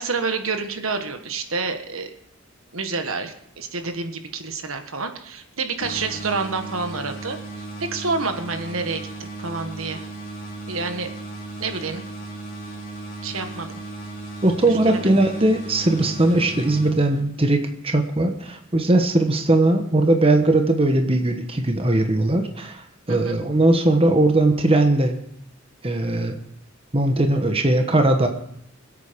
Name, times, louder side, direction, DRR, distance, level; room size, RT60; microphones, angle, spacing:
voice 1, 0.0-2.1 2.7-10.0 10.7-11.1 11.6-12.1 13.2-13.7 14.8-15.1 23.1-23.4, right 4 dB, 75° right, 7 dB, 1.5 m, -28 dB
sound 1, 5.8-17.5, right 2 dB, 40° left, 2.9 m, -36 dB
voice 2, 14.4-25.2 25.8-26.4 26.9-28.3, right 2 dB, 25° right, 5 dB, 1.2 m, -19 dB
21.5 x 8.6 x 5.2 m, 0.75 s
head